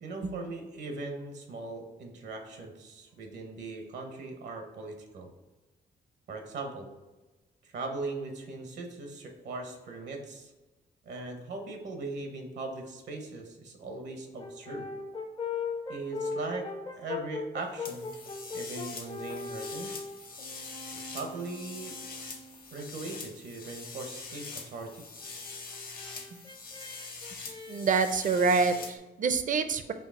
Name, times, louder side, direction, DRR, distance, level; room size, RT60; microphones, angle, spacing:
voice 1, 0.0-5.3 6.3-6.9 7.7-10.5 11.0-14.9 15.9-16.7 17.0-18.1 18.5-20.1 21.0-21.9 22.7-25.0, right 3 dB, 75° right, 4 dB, 0.8 m, -39 dB
Brass instrument, 14.4-22.7 25.2-28.9, left 4 dB, 30° left, 0.4 m, -40 dB
sound 1, 17.9-29.0, left 4 dB, 55° left, 0.9 m, -44 dB
voice 2, 27.3-29.9, right 5 dB, 45° right, 10 dB, 0.4 m, -27 dB
4.5 x 2.7 x 3.6 m, 1.1 s
cardioid pair, 90°, 18 cm